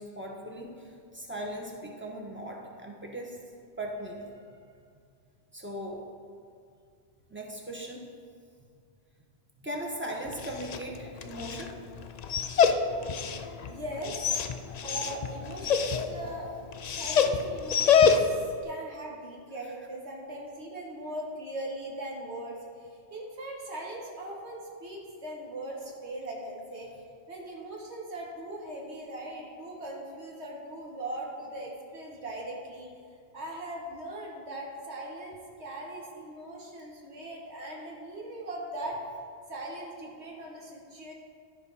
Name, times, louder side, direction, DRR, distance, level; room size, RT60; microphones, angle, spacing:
voice 1, 0.0-3.4 3.8-4.4 5.5-6.0 7.3-8.0 9.6-11.8, right 1 dB, 10° right, -1 dB, 1.2 m, -38 dB
Dog, 10.3-18.5, left 6 dB, 55° left, 0.4 m, -27 dB
voice 2, 12.8-13.3 13.7-14.3 14.8-16.5 16.8-18.3 18.6-26.9 27.3-32.9 33.3-39.0 39.5-41.1, right 1 dB, 75° right, -2 dB, 1.8 m, -40 dB
12.5 x 4.5 x 5.5 m, 2.3 s
omnidirectional pair, 1.1 m